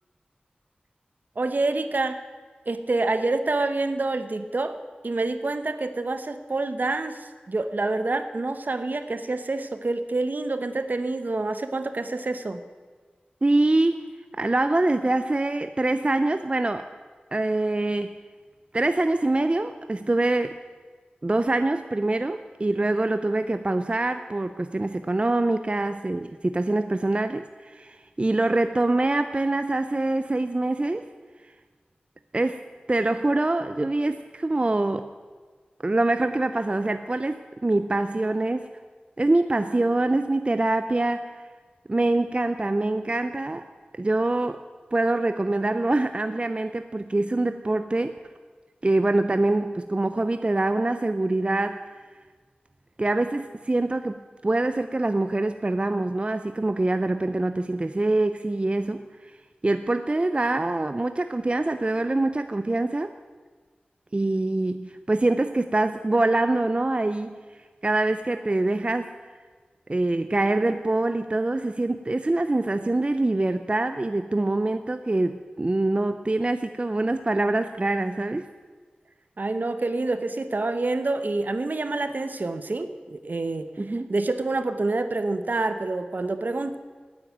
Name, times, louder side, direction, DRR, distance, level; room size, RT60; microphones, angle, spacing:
voice 1, 1.4-2.2 2.7-4.8 5.0-12.6 79.4-83.7 84.1-86.8, right 2 dB, 60° right, 10 dB, 0.9 m, -27 dB
voice 2, 13.4-14.0 14.3-16.8 17.3-18.1 18.7-20.6 21.2-31.1 32.3-32.6 32.9-35.1 35.8-38.7 39.2-41.4 41.9-43.6 43.9-44.6 44.9-48.2 48.8-51.8 53.0-59.3 59.6-63.1 64.1-67.4 67.8-69.1 69.9-78.5 83.8-84.1, right 2 dB, 35° right, 9 dB, 0.5 m, -24 dB
9.2 x 8.8 x 9.0 m, 1.5 s
wide cardioid pair, 55°, 3 cm